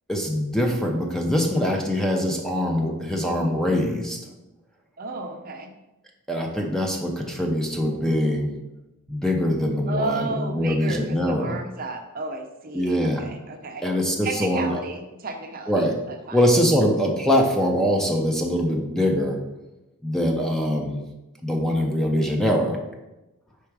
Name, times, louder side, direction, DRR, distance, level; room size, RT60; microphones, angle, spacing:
voice 1, 0.1-4.2 6.3-8.5 9.1-11.6 12.7-13.3 13.8-14.8 15.7-16.0 16.3-19.4 20.0-21.0 21.4-22.8, equal, ahead, 1 dB, 0.5 m, -23 dB
voice 2, 5.0-5.7 9.9-13.8 14.2-16.4, right 3 dB, 40° right, 5 dB, 0.6 m, -33 dB
4.7 x 4.3 x 4.7 m, 0.99 s
head